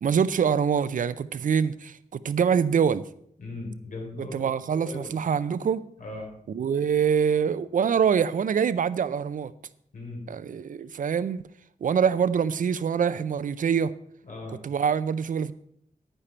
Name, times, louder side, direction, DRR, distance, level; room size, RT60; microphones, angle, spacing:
voice 1, 0.0-3.0 4.2-5.8 6.5-9.5 10.3-11.4 11.8-13.9 14.6-15.5, right 7 dB, 80° right, 0.5 m, -25 dB
voice 2, 3.4-5.2 6.0-6.3 9.9-10.2 14.2-14.6, left 2 dB, 75° left, 3.8 m, -38 dB
10.0 x 10.0 x 4.5 m
wide cardioid pair, 145°, 14 cm